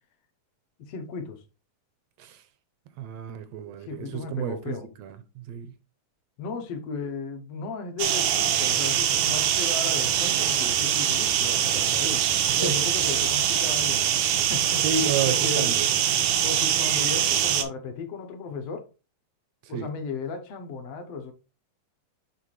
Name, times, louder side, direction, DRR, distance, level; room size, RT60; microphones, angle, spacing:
voice 1, 0.8-1.4 3.9-4.9 6.4-12.2 12.6-14.1 14.4-14.8 15.3-15.7 16.4-18.9 19.7-21.3, left 4 dB, 65° left, 1.8 m, -35 dB
voice 2, 3.0-5.7 12.5-12.8 14.8-16.4 19.6-19.9, right 6 dB, 75° right, 1.6 m, -32 dB
sound 1, 8.0-17.6, right 10 dB, 90° right, 2.2 m, -23 dB
8.3 x 3.8 x 3.2 m
omnidirectional pair, 3.4 m